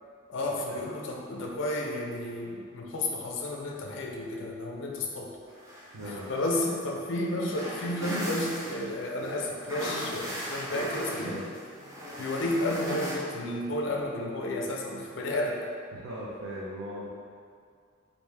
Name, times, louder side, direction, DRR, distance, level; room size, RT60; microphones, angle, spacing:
voice 1, 0.3-5.4 6.0-11.4 12.2-15.6, left 1 dB, 60° left, 0 dB, 0.4 m, -32 dB
sound 1, 5.5-13.2, equal, 15° right, 0.5 m, -38 dB
voice 2, 5.9-6.3 11.2-11.5 15.9-17.1, equal, 85° right, -7 dB, 0.5 m, -38 dB
3.2 x 2.5 x 3.3 m, 2.2 s
head